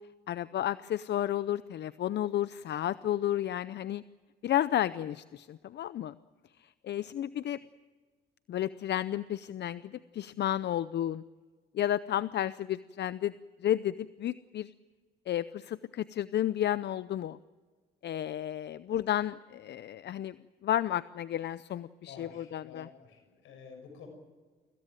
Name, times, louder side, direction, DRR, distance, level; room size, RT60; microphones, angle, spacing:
voice 1, 0.3-4.0 4.4-6.1 6.6-7.6 8.5-11.2 11.7-13.3 13.6-14.7 15.3-17.4 18.0-20.4 20.6-22.9, left 11 dB, 60° left, 16 dB, 0.6 m, -32 dB
voice 2, 22.1-24.1, left 6 dB, 85° left, 4 dB, 6.7 m, -50 dB
24.5 x 16.5 x 9.1 m, 1.5 s
cardioid pair, 90°, 20 cm